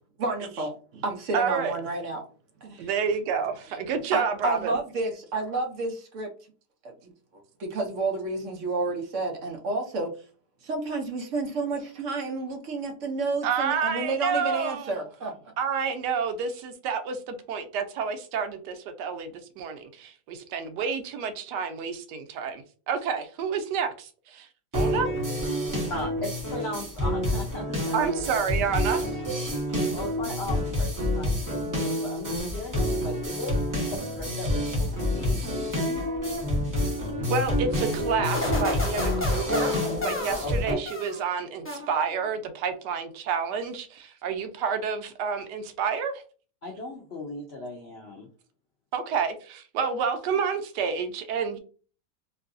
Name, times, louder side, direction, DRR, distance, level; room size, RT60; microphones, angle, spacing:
voice 1, 0.2-2.2 2.6-2.8 4.1-6.3 7.0-7.1 7.6-10.1 10.6-15.3, right 3 dB, 60° right, 0.9 m, -30 dB
voice 2, 1.3-1.7 2.8-4.7 13.4-15.0 15.6-24.5 24.7-25.1 27.9-29.2 37.3-39.7 40.0-46.2 48.9-51.6, right 6 dB, 85° right, 1.2 m, -29 dB
sound 1, 24.7-40.7, left 1 dB, 15° right, 0.8 m, -28 dB
voice 3, 25.9-28.3 29.7-33.6 33.9-36.1 40.4-40.8 46.6-48.3, left 2 dB, 75° left, 0.6 m, -37 dB
sound 2, 38.3-41.3 41.6-42.3, left 2 dB, 10° left, 0.6 m, -32 dB
3.1 x 2.6 x 2.5 m
omnidirectional pair, 1.8 m